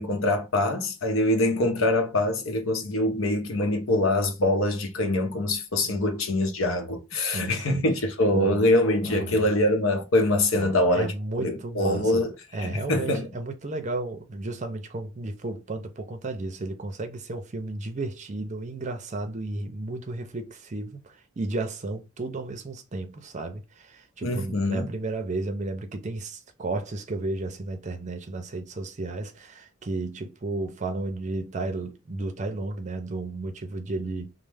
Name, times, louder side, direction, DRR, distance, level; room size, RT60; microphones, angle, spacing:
voice 1, 0.0-11.1 11.4-12.3 12.6-13.3 24.2-24.9, left 1 dB, 80° left, 0.7 m, -24 dB
voice 2, 7.2-7.9 8.3-8.7 9.1-9.5 10.5-34.3, right 2 dB, 35° right, 0.5 m, -33 dB
3.1 x 2.0 x 3.4 m
head